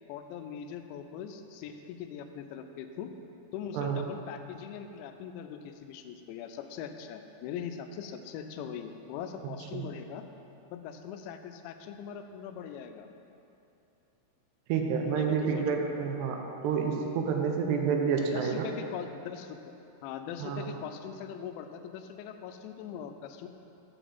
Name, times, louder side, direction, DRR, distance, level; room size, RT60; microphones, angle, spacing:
voice 1, 0.1-3.1 3.5-10.2 10.7-13.1 15.1-15.8 18.3-19.8 20.0-23.5, left 8 dB, 85° left, 7 dB, 2.8 m, -41 dB
voice 2, 14.7-18.7 20.4-20.7, right 6 dB, 80° right, 2 dB, 2.6 m, -29 dB
7.8 x 5.0 x 7.0 m, 2.9 s
omnidirectional pair, 5.2 m